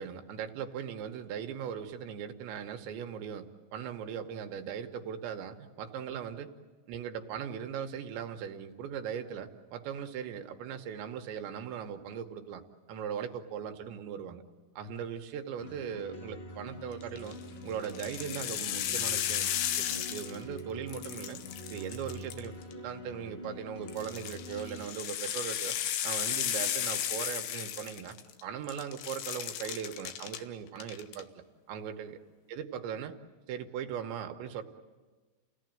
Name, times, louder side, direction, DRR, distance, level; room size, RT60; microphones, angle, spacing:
voice 1, 0.0-6.5 6.9-12.6 12.9-14.4 14.8-17.4 17.6-19.5 19.8-21.4 21.7-25.8 26.0-28.2 28.4-32.2 32.5-33.1 33.5-34.6, right 8 dB, 80° right, 6 dB, 3.3 m, -39 dB
sound 1, 15.6-24.8, left 1 dB, 40° left, 0.8 m, -45 dB
sound 2, 17.0-17.4 17.8-20.6 20.9-22.7 23.9-28.4 28.7-30.4 30.8-31.2, left 11 dB, 75° left, 2.8 m, -34 dB
29.0 x 17.5 x 9.1 m, 1.3 s
omnidirectional pair, 5.2 m